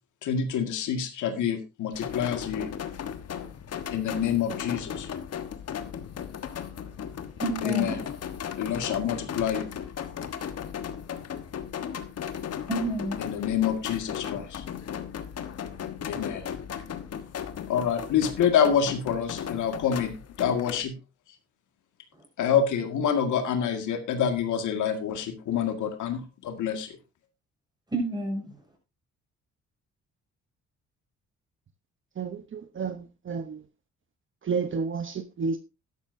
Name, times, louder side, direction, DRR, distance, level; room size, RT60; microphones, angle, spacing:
voice 1, 0.2-2.7 3.4-3.5 3.9-5.1 7.7-7.9 8.5-9.7 13.4-14.6 16.1-16.5 17.7-20.9 22.4-27.0, left 8 dB, 80° left, 2.0 m, -27 dB
sound 1, 1.9-20.8, left 8 dB, 55° left, 1.3 m, -36 dB
voice 2, 6.1-8.0 8.3-8.8 10.9-11.1 12.7-13.5 15.6-15.8 22.1-22.2 27.9-28.8, right 1 dB, 15° right, 6.4 m, -33 dB
voice 3, 32.2-33.6 34.4-35.6, right 5 dB, 40° right, 1.0 m, -31 dB
12.5 x 11.5 x 2.7 m
cardioid pair, 90°, 30 cm